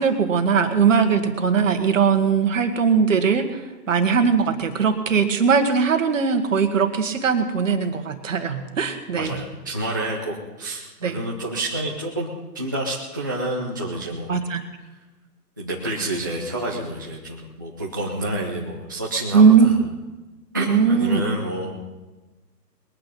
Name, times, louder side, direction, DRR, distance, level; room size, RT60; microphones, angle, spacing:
voice 1, 0.0-3.6 3.9-9.4 11.0-11.2 14.3-14.6 19.3-19.7 20.7-21.2, right 6 dB, 50° right, 8 dB, 1.6 m, -19 dB
voice 2, 9.1-12.3 12.5-14.4 15.6-19.8 20.5-21.8, right 1 dB, 15° right, -5 dB, 0.5 m, -28 dB
21.0 x 9.1 x 5.4 m, 1.2 s
hypercardioid pair, 150°, 49 cm